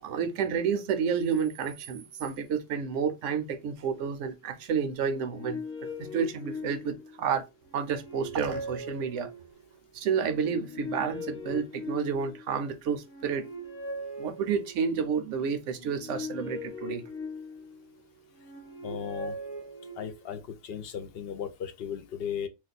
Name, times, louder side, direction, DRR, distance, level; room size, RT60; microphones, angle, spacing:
voice 1, 0.0-7.5 7.7-9.3 9.9-13.5 14.2-17.0, right 6 dB, 80° right, 1.0 m, -30 dB
sound 1, 5.0-7.2 7.7-9.7 10.4-12.5 13.0-15.0 15.7-17.8 18.3-20.3, left 2 dB, 20° left, 0.4 m, -40 dB
voice 2, 18.8-19.4 20.0-22.5, left 8 dB, 60° left, 0.7 m, -36 dB
2.6 x 2.2 x 4.0 m
omnidirectional pair, 1.3 m